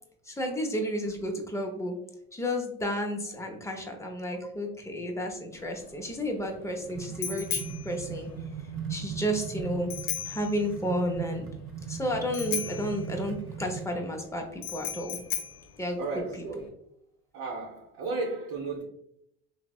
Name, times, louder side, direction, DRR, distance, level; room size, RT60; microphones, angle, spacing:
voice 1, 0.3-2.0 2.3-8.3 8.9-9.9 10.3-11.5 11.9-15.2 15.8-16.0, equal, 10° left, 2 dB, 0.6 m, -32 dB
Bicycle bell, 5.5-16.7, left 9 dB, 80° left, 0.6 m, -38 dB
sound 1, 6.4-14.0, right 7 dB, 35° right, 0.5 m, -39 dB
voice 2, 16.0-16.7 17.3-18.8, right 3 dB, 70° right, -3 dB, 0.8 m, -34 dB
3.2 x 2.0 x 2.3 m, 0.74 s
supercardioid pair, 85°, 36 cm